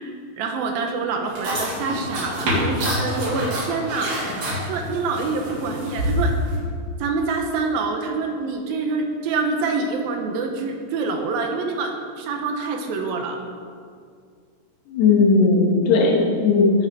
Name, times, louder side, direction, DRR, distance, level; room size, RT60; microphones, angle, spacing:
voice 1, 0.0-6.4 7.0-13.4, right 4 dB, 70° right, 3 dB, 2.5 m, -26 dB
sound 1, 1.3-6.6, equal, 50° right, 4.7 m, -26 dB
voice 2, 14.9-16.9, left 3 dB, 75° left, -1 dB, 3.5 m, -17 dB
17.5 x 8.0 x 4.2 m, 2.1 s
omnidirectional pair, 4.9 m